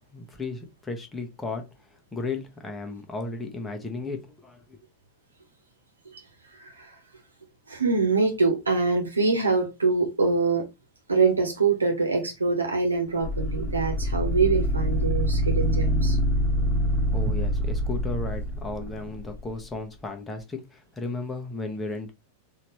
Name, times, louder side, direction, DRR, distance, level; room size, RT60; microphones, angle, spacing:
voice 1, 0.1-1.6 2.1-4.8 17.1-22.1, left 3 dB, 10° left, 1.0 m, -34 dB
voice 2, 6.6-6.9 7.7-10.7 11.1-16.2, right 4 dB, 75° right, 1.2 m, -24 dB
sound 1, 13.2-19.4, equal, 35° left, 1.4 m, -25 dB
4.1 x 2.8 x 3.1 m
figure-of-eight pair, 90°, 0 cm